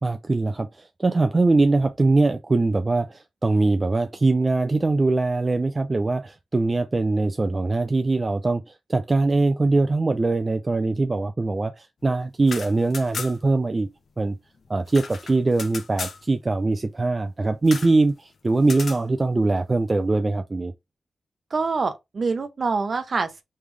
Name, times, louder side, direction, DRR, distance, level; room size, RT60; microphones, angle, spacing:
voice 1, 0.0-13.9 14.2-14.4 14.7-20.7, right 3 dB, 35° right, 0.4 m, -22 dB
sound 1, 12.3-13.6 13.9-14.0 14.2-16.2 17.7-18.0 18.6-19.0, left 5 dB, 70° left, 0.7 m, -35 dB
voice 2, 21.5-23.4, right 4 dB, 55° right, 0.8 m, -25 dB
3.5 x 3.2 x 3.3 m
cardioid pair, 65°, 0 cm